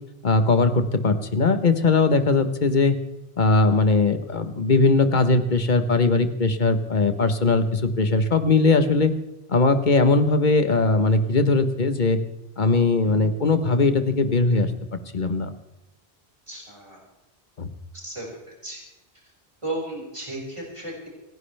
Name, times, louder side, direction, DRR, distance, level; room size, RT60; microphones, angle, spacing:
voice 1, 0.2-3.0 3.4-9.1 9.5-12.2 12.6-14.7 15.1-15.5 17.6-17.7, left 3 dB, 45° left, 10 dB, 1.3 m, -20 dB
voice 2, 16.5-17.0 17.9-18.8 19.6-21.1, right 1 dB, 30° right, -3 dB, 5.6 m, -34 dB
28.0 x 11.0 x 3.4 m, 1.0 s
omnidirectional pair, 1.1 m